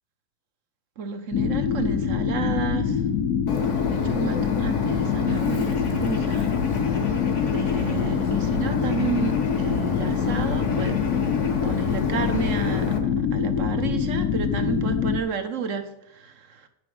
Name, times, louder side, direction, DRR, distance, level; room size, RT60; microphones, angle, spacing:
voice 1, 1.0-3.0 3.9-7.3 7.5-11.3 11.6-16.7, right 6 dB, 60° right, 8 dB, 1.2 m, -32 dB
sound 1, 1.3-15.2, left 7 dB, 85° left, 1.2 m, -24 dB
Bird, 3.5-13.0, left 4 dB, 55° left, 1.4 m, -34 dB
9.5 x 6.2 x 4.8 m, 0.83 s
omnidirectional pair, 1.5 m